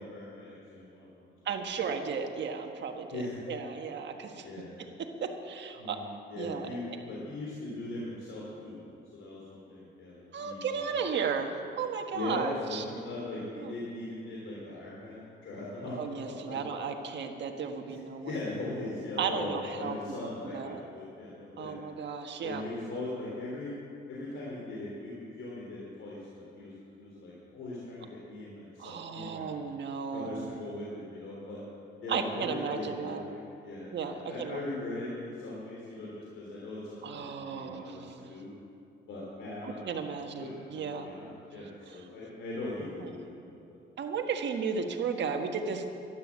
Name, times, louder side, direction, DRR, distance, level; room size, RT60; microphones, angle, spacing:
voice 1, 0.0-1.4 3.1-3.4 4.4-4.9 5.8-8.8 9.1-11.3 12.1-16.6 17.9-21.7 22.4-23.7 24.1-29.7 30.1-31.6 32.0-38.5 39.1-43.8, left 2 dB, 75° left, -5 dB, 3.4 m, -40 dB
voice 2, 1.4-3.2 3.5-4.5 5.0-6.0 6.4-6.7 10.3-12.8 13.6-13.7 16.0-18.4 19.2-19.9 20.5-20.8 21.6-22.6 28.8-30.6 32.1-33.2 33.9-34.6 37.0-38.3 39.6-41.1 43.0-43.1 44.0-45.8, right 6 dB, 65° right, 4 dB, 1.5 m, -34 dB
12.5 x 11.5 x 7.5 m, 2.6 s
cardioid pair, 90°, 20 cm